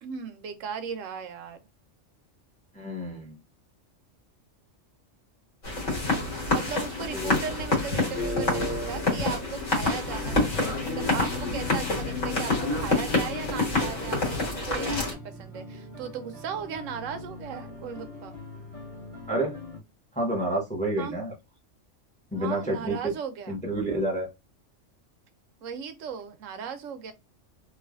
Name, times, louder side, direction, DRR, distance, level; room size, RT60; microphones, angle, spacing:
voice 1, 0.0-1.6 6.5-10.4 10.8-18.4 21.0-21.2 22.3-23.6 25.6-27.1, right 7 dB, 80° right, 1.0 m, -37 dB
voice 2, 2.7-3.4 7.1-7.4 19.3-19.6 20.1-21.3 22.3-23.1 23.5-24.3, right 1 dB, 5° left, 0.6 m, -29 dB
sound 1, 5.6-15.1, left 2 dB, 70° left, 1.6 m, -27 dB
sound 2, 10.0-19.8, left 3 dB, 25° left, 1.4 m, -42 dB
3.2 x 2.4 x 2.4 m
omnidirectional pair, 1.3 m